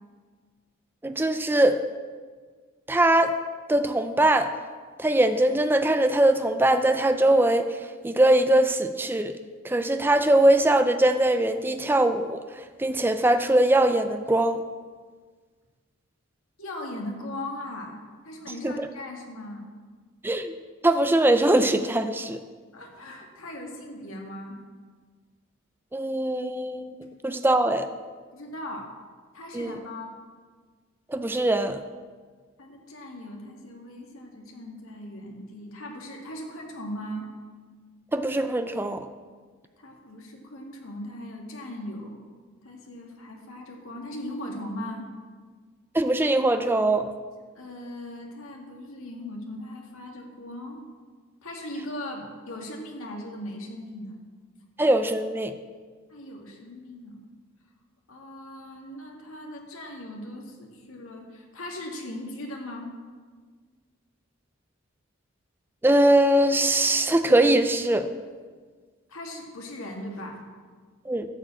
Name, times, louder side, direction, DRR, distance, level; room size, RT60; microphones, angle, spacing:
voice 1, 1.0-1.8 2.9-3.3 3.7-4.5 5.0-7.8 8.0-9.3 9.6-12.4 12.8-14.6 18.6-18.9 20.2-20.5 20.8-22.4 25.9-27.0 27.2-27.9 29.5-29.7 31.1-31.8 38.1-39.1 45.9-47.1 54.8-55.5 65.8-68.1 71.1-71.3, right 1 dB, 10° right, 9 dB, 0.4 m, -21 dB
voice 2, 16.6-19.7 22.7-24.6 28.3-28.9 29.3-30.1 32.6-37.3 39.8-42.2 42.6-45.1 47.6-50.8 51.4-54.2 56.1-57.2 58.1-62.9 69.1-70.4, left 1 dB, 80° left, 1 dB, 2.0 m, -38 dB
12.5 x 5.0 x 7.6 m, 1.5 s
head